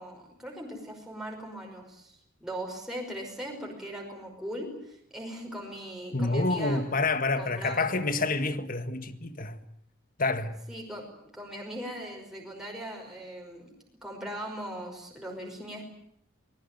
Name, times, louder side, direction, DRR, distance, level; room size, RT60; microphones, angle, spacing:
voice 1, 0.0-6.8 7.4-8.0 10.7-11.1 11.3-13.7 14.0-15.8, right 1 dB, ahead, 5.5 m, -39 dB
voice 2, 6.1-9.6 10.2-10.6, left 3 dB, 40° left, 1.7 m, -28 dB
24.0 x 20.5 x 9.3 m
head